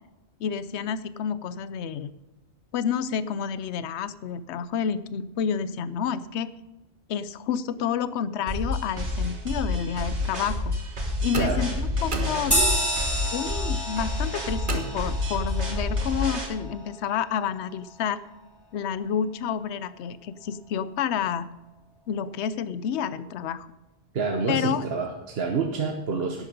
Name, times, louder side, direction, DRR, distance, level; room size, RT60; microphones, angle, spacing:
voice 1, 0.4-2.1 2.7-6.5 7.1-10.8 11.2-12.6 13.3-18.2 18.7-21.5 22.1-23.7 24.5-24.8, left 8 dB, 80° left, 15 dB, 0.9 m, -29 dB
sound 1, 8.5-16.5, left 2 dB, 90° right, 2.4 m, -29 dB
sound 2, 11.3-13.0 14.7-15.6, right 4 dB, 45° right, 1.5 m, -35 dB
sound 3, 12.5-17.4, equal, 20° left, 2.4 m, -30 dB
voice 2, 24.1-26.5, right 4 dB, 65° right, 3 dB, 1.2 m, -27 dB
11.5 x 9.1 x 5.2 m, 1.1 s
omnidirectional pair, 1.1 m